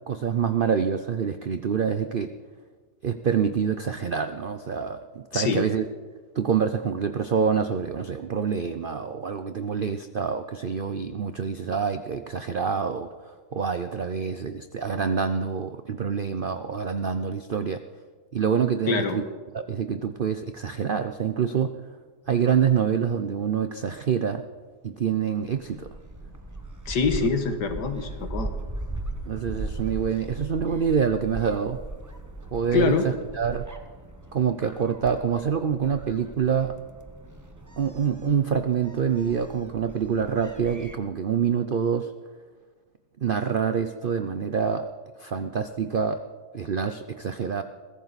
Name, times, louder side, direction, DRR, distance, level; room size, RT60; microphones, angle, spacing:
voice 1, 0.1-2.3 3.0-5.8 6.4-17.8 18.3-19.2 19.5-21.8 22.3-24.4 24.8-26.0 27.2-27.3 29.3-31.8 32.5-33.6 34.3-36.7 37.8-42.1 43.2-44.9 45.2-46.2 46.5-47.6, right 7 dB, 75° right, 9 dB, 0.4 m, -26 dB
voice 2, 5.3-5.6 18.9-19.2 26.9-28.5 32.7-33.1, left 5 dB, 75° left, 7 dB, 2.0 m, -24 dB
Gull seagull, 25.5-41.0, right 2 dB, 15° right, 0.8 m, -38 dB
22.0 x 15.0 x 4.1 m, 1.4 s
omnidirectional pair, 1.8 m